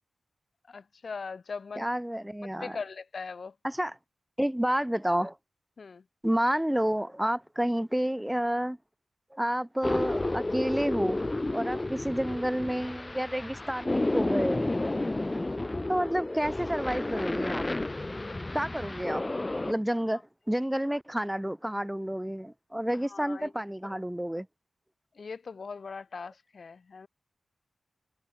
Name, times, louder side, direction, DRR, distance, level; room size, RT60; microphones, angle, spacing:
voice 1, 0.7-1.9 2.6-3.5 5.8-6.0 12.3-12.4 15.5-16.1 22.9-23.5 25.2-27.1, left 5 dB, 70° left, 2.5 m, -40 dB
voice 2, 1.8-2.8 3.6-3.9 4.4-5.4 6.2-8.8 9.3-11.2 11.5-14.6 15.9-17.7 18.5-19.3 19.6-24.5, equal, 10° right, 3.1 m, -30 dB
sound 1, 9.8-19.7, left 2 dB, 30° left, 0.7 m, -31 dB
cardioid pair, 45°, 0 cm